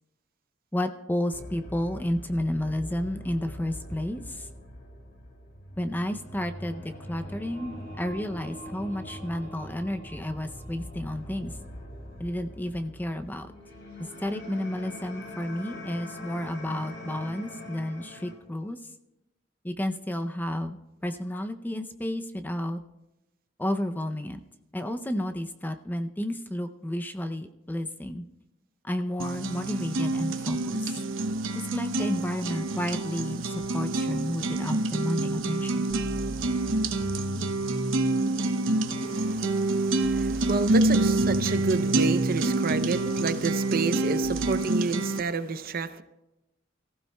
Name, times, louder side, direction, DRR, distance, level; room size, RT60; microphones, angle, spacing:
voice 1, 0.7-4.5 5.8-11.5 12.2-13.5 14.2-18.8 19.6-22.8 23.6-24.4 24.7-28.2 28.8-31.0 31.7-35.9, left 1 dB, 10° left, 8 dB, 0.5 m, -31 dB
sound 1, 1.3-18.3, left 1 dB, 60° left, 2.9 m, -42 dB
sound 2, 29.2-45.2, right 2 dB, 85° right, 0.9 m, -27 dB
sound 3, 35.9-44.5, equal, 40° left, 6.4 m, -37 dB
voice 2, 39.0-46.0, right 4 dB, 50° right, 12 dB, 0.6 m, -30 dB
24.5 x 15.0 x 2.3 m, 0.96 s
head